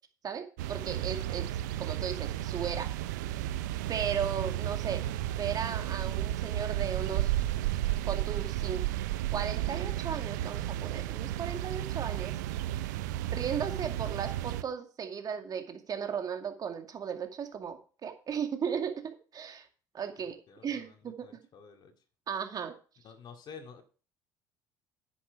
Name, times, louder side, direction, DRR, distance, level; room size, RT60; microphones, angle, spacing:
voice 1, 0.2-2.9 3.9-5.1 5.4-7.4 8.1-8.8 9.3-12.4 13.2-19.7 19.9-20.4 20.6-21.3 22.3-22.7, right 7 dB, 45° right, 5 dB, 2.3 m, -36 dB
sound 1, 0.6-14.6, right 13 dB, 80° right, 0.6 m, -33 dB
voice 2, 20.5-21.0 21.2-21.9 23.0-23.8, left 6 dB, 50° left, 5 dB, 2.2 m, -50 dB
10.0 x 8.6 x 4.6 m, 0.38 s
hypercardioid pair, 65°, 9 cm